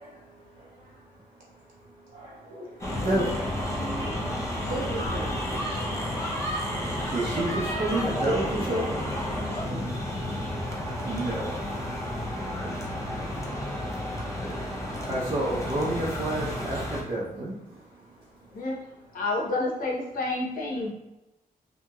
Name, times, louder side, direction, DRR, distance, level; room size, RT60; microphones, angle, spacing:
sound 1, 2.8-17.0, left 1 dB, 20° left, 0.6 m, -31 dB
voice 1, 3.0-3.4 7.1-8.9 11.0-11.6 15.1-17.5, right 1 dB, 40° right, -8 dB, 0.6 m, -29 dB
voice 2, 4.6-5.4 8.2-9.1 9.5-10.1, right 2 dB, 55° right, -4 dB, 1.1 m, -35 dB
voice 3, 19.1-20.9, left 2 dB, 65° left, -2 dB, 0.7 m, -29 dB
2.8 x 2.8 x 2.3 m, 0.94 s
cardioid pair, 115°, 15 cm